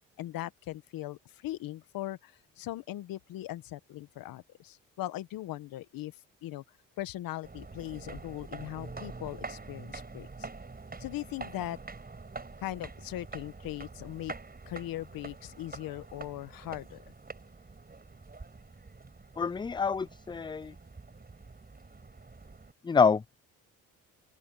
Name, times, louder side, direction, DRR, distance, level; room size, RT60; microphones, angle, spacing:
voice 1, 0.2-6.1 6.4-6.6 7.0-10.5 11.0-11.8 12.6-14.3 14.7-17.0, left 14 dB, 85° left, 1.3 m, -39 dB
sound 1, 7.4-22.7, right 3 dB, 25° right, 5.8 m, -46 dB
voice 2, 19.4-20.7 22.8-23.3, left 5 dB, 15° left, 0.3 m, -27 dB
open air
cardioid pair, 70°, 34 cm